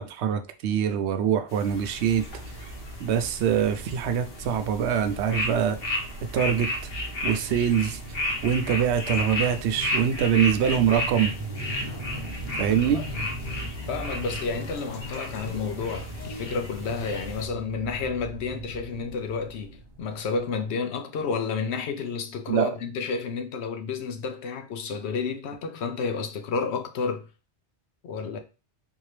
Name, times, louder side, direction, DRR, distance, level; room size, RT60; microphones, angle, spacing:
voice 1, 0.0-2.2 3.0-5.8 6.3-6.7 7.2-8.0 8.4-11.3 12.6-13.0 22.5-22.7, right 8 dB, 85° right, 0.8 m, -24 dB
sound 1, 1.5-17.4, left 2 dB, 65° left, 1.2 m, -34 dB
sound 2, 1.7-20.7, right 2 dB, 25° right, 0.7 m, -39 dB
sound 3, 9.0-16.4, left 4 dB, 35° left, 0.5 m, -43 dB
voice 2, 12.7-13.3 13.9-27.3 28.0-28.4, left 5 dB, 80° left, 0.9 m, -31 dB
3.8 x 2.7 x 3.2 m
omnidirectional pair, 1.1 m